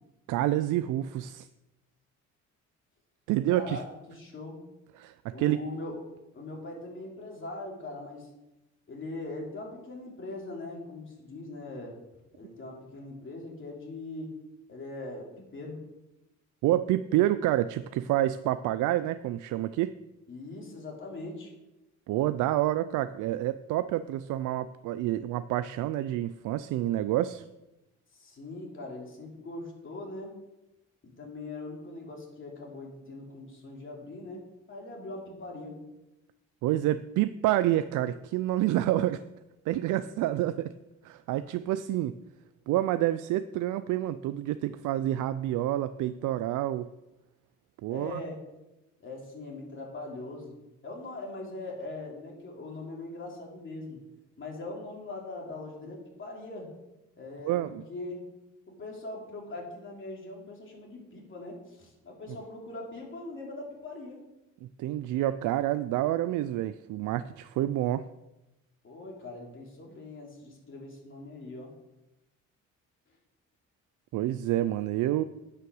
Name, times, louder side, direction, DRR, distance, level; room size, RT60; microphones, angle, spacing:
voice 1, 0.3-1.5 3.3-3.8 5.0-5.6 16.6-19.9 22.1-27.4 36.6-39.2 39.7-40.7 41.0-42.1 42.7-46.9 47.8-48.2 57.4-57.8 64.8-68.1 74.1-75.2, right 14 dB, 85° right, 13 dB, 0.5 m, -28 dB
voice 2, 3.5-4.6 5.3-6.0 6.3-8.3 8.9-12.0 12.3-14.3 14.7-15.8 20.3-21.5 28.1-30.4 31.0-35.8 47.9-48.4 49.0-50.6 50.8-54.0 54.4-56.7 57.2-58.3 58.7-64.2 68.8-71.7, left 2 dB, 40° left, -1 dB, 3.4 m, -41 dB
9.6 x 5.7 x 6.4 m, 0.96 s
cardioid pair, 90°, 30 cm